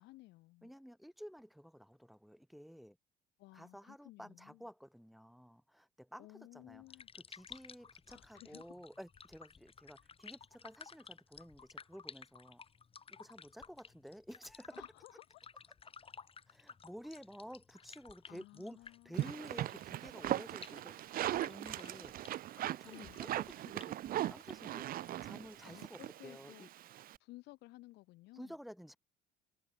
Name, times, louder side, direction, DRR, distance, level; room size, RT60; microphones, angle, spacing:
voice 1, 0.0-0.7 3.4-4.7 6.2-7.1 8.1-8.7 14.7-15.4 18.3-19.3 21.4-21.7 22.8-23.2 25.6-26.7 27.2-28.5, left 19 dB, 90° left, 4.8 m, -57 dB
voice 2, 0.6-3.0 3.5-6.8 7.3-12.6 13.1-14.9 16.5-18.8 19.0-22.1 22.7-24.9 25.2-26.7 28.3-29.0, equal, ahead, 5.7 m, -52 dB
sound 1, 6.7-25.8, left 6 dB, 35° left, 4.8 m, -56 dB
sound 2, 19.1-27.2, right 13 dB, 60° right, 0.7 m, -39 dB
cardioid pair, 110°, 17 cm